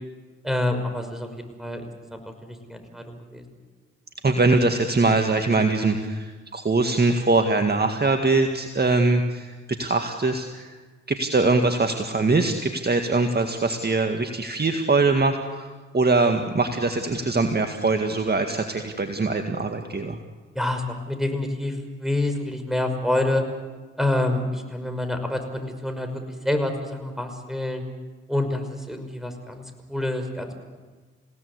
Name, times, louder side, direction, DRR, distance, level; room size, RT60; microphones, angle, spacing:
voice 1, 0.4-1.8 2.1-2.2 2.7-3.4 20.5-23.4 24.0-26.1 26.4-27.8 28.3-29.6 29.9-30.6, left 1 dB, ahead, 6 dB, 5.6 m, -27 dB
voice 2, 4.2-10.8 11.1-20.2, right 3 dB, 30° right, 5 dB, 2.0 m, -22 dB
28.5 x 17.0 x 8.2 m, 1.4 s
hypercardioid pair, 40°, 32 cm